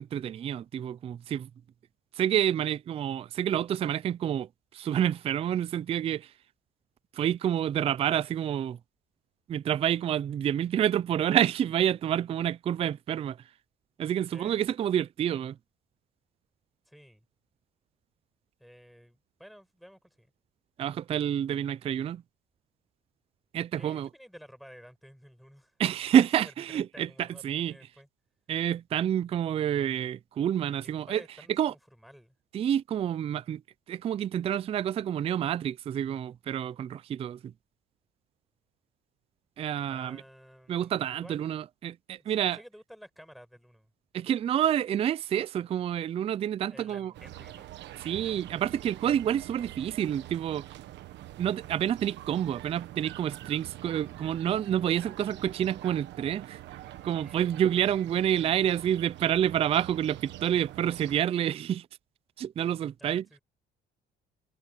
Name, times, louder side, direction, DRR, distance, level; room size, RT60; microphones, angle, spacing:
voice 1, 0.0-1.5 2.2-4.5 4.7-6.3 7.1-8.8 9.5-13.4 14.0-15.6 20.8-22.2 23.5-24.1 25.8-27.7 28.5-31.2 31.6-31.7 32.5-33.6 33.9-37.5 39.6-40.2 40.7-42.6 44.1-47.1 48.0-50.6 51.4-56.6 57.0-61.9 62.4-63.2, right 10 dB, 30° right, 0.3 m, -28 dB
voice 2, 14.3-14.6 16.9-17.3 18.6-20.3 23.7-25.8 26.2-28.1 30.8-32.4 39.9-41.6 42.2-43.9 46.7-47.8 57.2-57.4 63.0-63.4, equal, ahead, 6.0 m, -52 dB
sound 1, 47.1-61.2, right 14 dB, 70° right, 1.2 m, -45 dB
cardioid pair, 130°, 19 cm